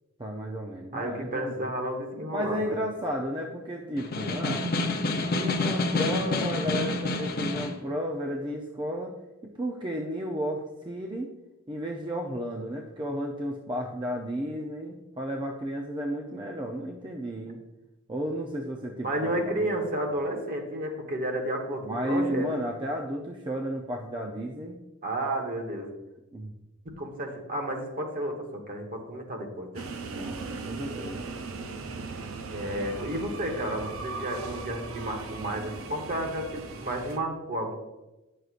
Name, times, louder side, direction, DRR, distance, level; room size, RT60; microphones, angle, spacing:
voice 1, 0.2-1.7 2.3-4.7 5.3-9.1 9.4-11.3 11.7-17.6 18.1-19.6 20.1-20.2 21.8-24.8 26.3-26.5 30.1-31.3, equal, 20° right, 0 dB, 0.5 m, -33 dB
voice 2, 0.9-2.6 19.0-22.6 25.0-25.9 26.8-29.9 32.5-37.7, right 1 dB, 45° right, 3 dB, 1.1 m, -32 dB
Snare drum, 4.0-7.8, left 2 dB, 45° left, 0.7 m, -28 dB
sound 1, 29.7-37.2, right 4 dB, 75° right, 0.6 m, -38 dB
9.2 x 6.4 x 2.5 m, 1.0 s
head